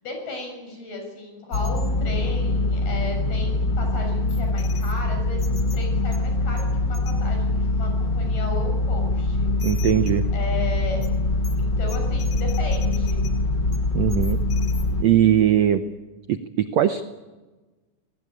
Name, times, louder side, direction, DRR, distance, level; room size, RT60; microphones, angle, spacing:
voice 1, 0.0-9.8 10.3-11.0 11.6-13.2, left 3 dB, 80° left, 3 dB, 8.9 m, -35 dB
sound 1, 1.5-15.0, left 2 dB, 45° left, 1.5 m, -23 dB
voice 2, 9.6-10.2 13.9-14.4 15.0-15.8 16.3-17.0, right 11 dB, 85° right, 10 dB, 1.5 m, -20 dB
26.5 x 19.0 x 8.7 m, 1.2 s
omnidirectional pair, 4.3 m